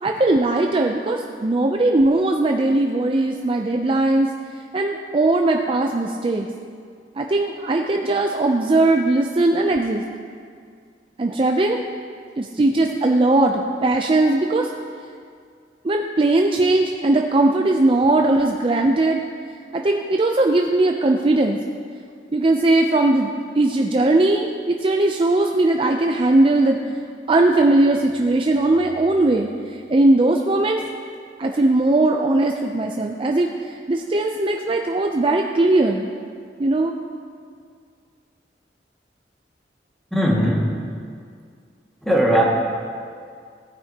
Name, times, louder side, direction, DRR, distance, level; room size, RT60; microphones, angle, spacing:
voice 1, 0.0-4.3 4.7-6.5 7.2-10.0 11.2-11.8 12.4-14.7 15.8-19.2 19.7-21.6 22.3-23.3 23.6-26.8 27.3-29.5 29.9-30.8 31.4-33.5 33.9-36.1 36.6-36.9, right 2 dB, 30° right, 2 dB, 0.4 m, -19 dB
voice 2, 40.1-40.7 42.0-42.4, equal, ahead, -4 dB, 1.8 m, -18 dB
18.0 x 9.3 x 2.8 m, 2.2 s
head